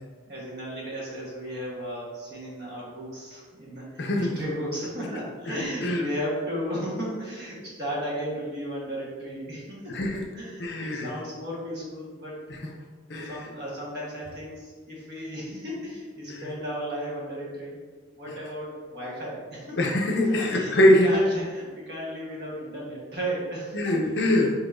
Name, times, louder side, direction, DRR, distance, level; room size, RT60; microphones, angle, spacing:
voice 1, 0.3-9.9 10.3-12.4 13.1-17.8 18.1-19.8 20.3-24.0, equal, 60° right, -5 dB, 1.3 m, -34 dB
voice 2, 4.0-4.4 5.5-5.6 5.8-6.1 9.9-10.2 10.6-11.2 12.5-12.6 13.1-13.4 16.3-16.5 19.8-21.1 23.7-24.5, left 1 dB, 60° left, 1 dB, 0.6 m, -23 dB
5.6 x 2.9 x 2.6 m, 1.5 s
head